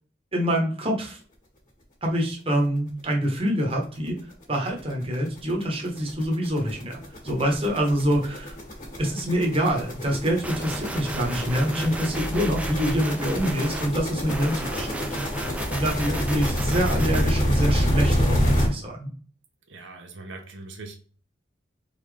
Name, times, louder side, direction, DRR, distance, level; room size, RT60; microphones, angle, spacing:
voice 1, 0.3-1.2 2.0-4.2 4.5-8.5 9.0-19.1, equal, 30° right, 0 dB, 1.1 m, -26 dB
sound 1, 3.2-3.3 3.7-3.8 4.1-18.7, equal, 45° left, 1.9 m, -27 dB
sound 2, 10.4-13.9 14.3-17.3, right 1 dB, 5° right, 0.4 m, -33 dB
voice 2, 19.7-21.0, right 3 dB, 90° right, 4 dB, 0.8 m, -41 dB
4.1 x 3.9 x 3.3 m, 0.42 s
head